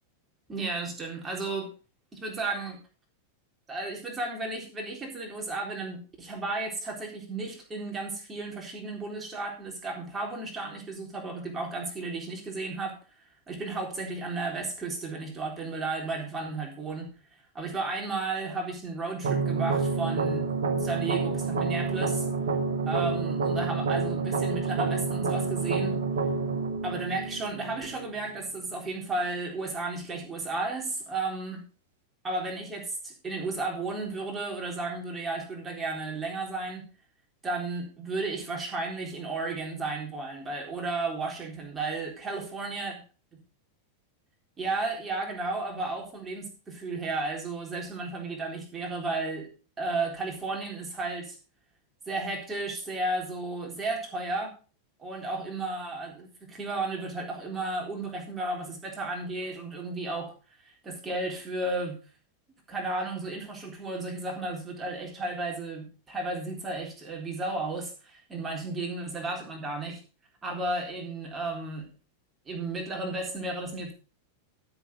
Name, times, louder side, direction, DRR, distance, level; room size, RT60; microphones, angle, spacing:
voice 1, 0.5-1.7 2.1-2.8 3.7-13.0 13.5-17.1 17.5-22.3 22.9-26.0 26.8-31.6 32.2-36.9 37.4-42.9 44.6-49.5 49.8-51.4 52.1-54.5 55.0-60.3 60.8-62.0 62.7-70.0 70.4-71.9 72.5-73.9, right 3 dB, 20° right, 0 dB, 3.8 m, -33 dB
sound 1, 19.2-28.2, right 4 dB, 65° right, 1.9 m, -28 dB
12.5 x 7.1 x 5.1 m, 0.36 s
figure-of-eight pair, 90°, 0 cm